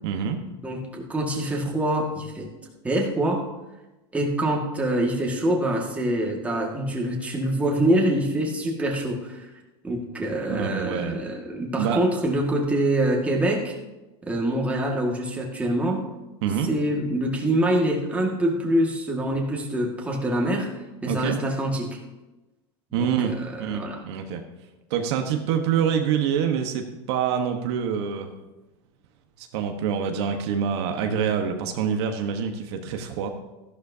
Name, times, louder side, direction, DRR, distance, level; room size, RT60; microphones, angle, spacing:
voice 1, 0.0-0.4 10.5-11.2 11.8-12.0 16.4-16.7 21.1-21.4 22.9-23.3 23.6-24.4 24.9-28.3 29.4-33.3, right 7 dB, 65° right, 5 dB, 1.2 m, -26 dB
voice 2, 0.6-2.5 2.8-3.5 4.1-9.5 9.8-13.8 14.2-16.1 16.7-22.0 23.0-24.0, right 1 dB, 10° right, -1 dB, 1.9 m, -25 dB
13.5 x 11.5 x 2.8 m, 1.0 s
supercardioid pair, 140°, 15 cm